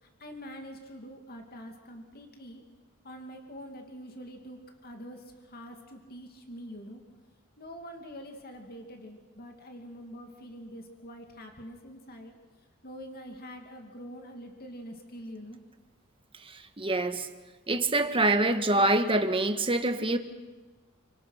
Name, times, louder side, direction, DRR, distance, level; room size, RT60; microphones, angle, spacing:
voice 1, 0.0-2.6 3.0-7.0 7.6-12.4 12.8-15.6, equal, 45° left, 2.5 m, -45 dB
voice 2, 16.4-17.3 17.7-20.2, right 2 dB, 25° right, 1.5 m, -25 dB
30.0 x 25.5 x 5.9 m
head